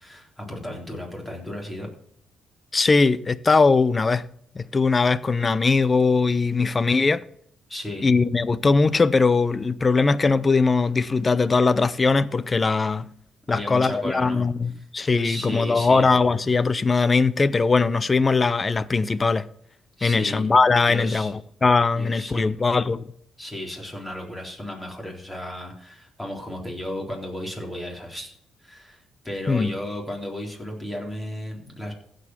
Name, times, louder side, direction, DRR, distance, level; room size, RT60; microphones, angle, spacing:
voice 1, 0.0-1.9 7.7-8.1 13.5-14.5 15.2-16.1 20.0-20.4 20.9-21.3 21.9-22.5 23.4-28.3 28.6-31.9, left 1 dB, 10° left, 4.1 m, -34 dB
voice 2, 2.7-4.3 4.5-7.2 8.0-13.1 13.5-19.5 20.0-23.0 29.5-29.7, left 4 dB, 30° left, 0.6 m, -20 dB
15.5 x 5.2 x 6.0 m
cardioid pair, 90°, 0 cm